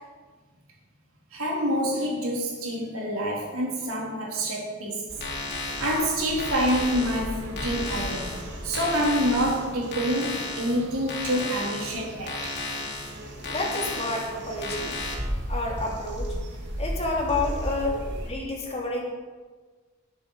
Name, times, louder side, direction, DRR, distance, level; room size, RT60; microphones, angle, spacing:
voice 1, 1.3-5.0 5.8-12.5, equal, 80° right, -3 dB, 3.8 m, -27 dB
sound 1, 5.1-15.1, left 2 dB, 55° left, 3.1 m, -35 dB
sound 2, 5.1-18.3, equal, 55° right, 2.3 m, -36 dB
voice 2, 13.5-14.9 15.5-16.3 16.8-18.0 18.2-19.1, left 2 dB, 30° left, -2 dB, 2.9 m, -29 dB
19.0 x 7.9 x 5.0 m, 1.4 s
head